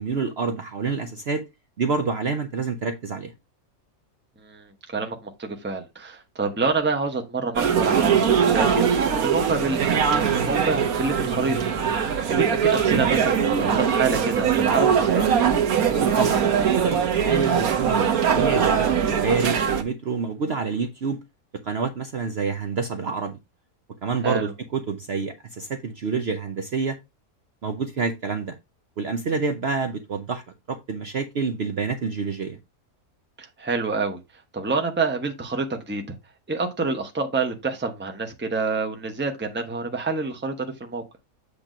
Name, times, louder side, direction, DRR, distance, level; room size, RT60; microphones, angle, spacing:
voice 1, 0.0-1.4 1.8-3.3 16.0-16.5 16.7-21.2 21.6-23.4 24.0-27.0 27.6-28.6 29.0-30.4 30.7-32.6, right 5 dB, 50° right, 0.8 m, -27 dB
voice 2, 4.4-11.6 11.9-15.2 24.2-24.5 33.4-34.2 34.5-36.0 36.5-40.5 40.8-41.0, right 4 dB, 10° right, 0.8 m, -27 dB
sound 1, 7.6-19.8, right 7 dB, 70° right, 1.4 m, -21 dB
8.2 x 2.9 x 5.0 m
omnidirectional pair, 1.6 m